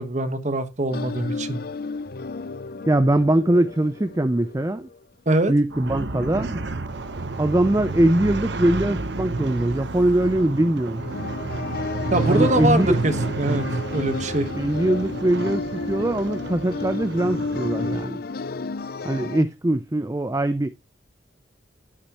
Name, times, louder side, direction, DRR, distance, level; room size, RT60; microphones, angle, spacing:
voice 1, 0.0-1.6 5.3-5.5 12.1-14.5, right 1 dB, 40° right, 1.2 m, -23 dB
sound 1, 0.9-5.0 11.0-19.4, left 4 dB, 50° left, 0.5 m, -32 dB
voice 2, 2.9-4.9 5.5-6.6 7.4-11.0 12.3-13.0 14.6-18.2 19.0-20.7, right 1 dB, 15° right, 0.4 m, -22 dB
sound 2, 5.7-11.7, right 3 dB, 80° right, 1.4 m, -41 dB
sound 3, 5.9-18.1, right 3 dB, 65° right, 0.9 m, -30 dB
9.7 x 8.8 x 2.9 m
head